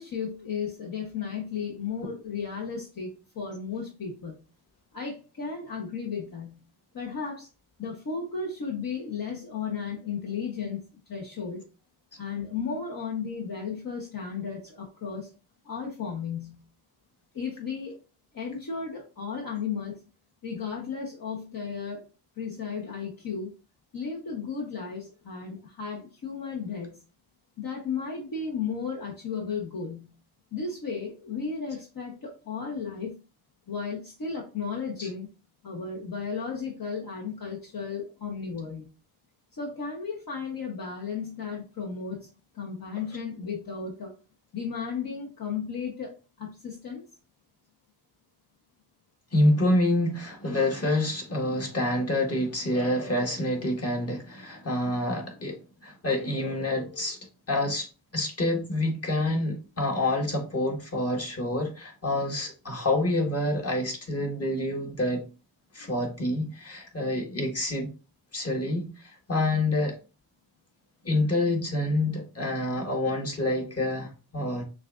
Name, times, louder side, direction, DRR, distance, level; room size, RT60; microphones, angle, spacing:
voice 1, 0.0-4.4 4.9-6.6 6.9-7.5 7.8-10.8 11.1-11.6 12.2-15.3 15.6-16.6 17.3-18.0 18.3-20.0 20.4-22.0 22.4-23.5 23.9-27.0 27.6-30.1 30.5-33.2 33.7-35.3 35.6-38.9 39.5-44.1 44.5-47.0, left 5 dB, 55° left, -2 dB, 1.1 m, -34 dB
voice 2, 49.3-55.6 55.8-57.2 57.5-65.2 65.7-67.9 68.3-70.0 71.0-74.6, left 1 dB, 35° left, 1 dB, 1.6 m, -27 dB
6.0 x 2.5 x 2.5 m, 0.32 s
supercardioid pair, 50°, 41 cm